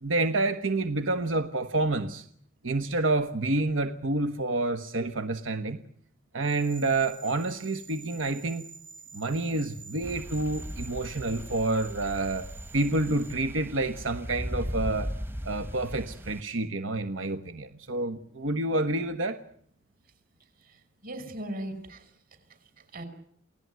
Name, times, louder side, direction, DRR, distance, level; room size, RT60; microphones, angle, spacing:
voice 1, 0.0-2.3 2.6-5.8 6.3-8.7 9.1-12.5 12.7-15.1 15.4-19.4, right 2 dB, 90° right, 8 dB, 1.3 m, -28 dB
sound 1, 6.4-13.3, right 4 dB, 75° right, 4.5 m, -48 dB
sound 2, 10.0-16.4, equal, 10° right, 1.0 m, -38 dB
voice 2, 20.6-22.1 22.8-23.0, right 1 dB, 50° right, 11 dB, 5.5 m, -39 dB
29.0 x 18.0 x 9.5 m, 0.65 s
head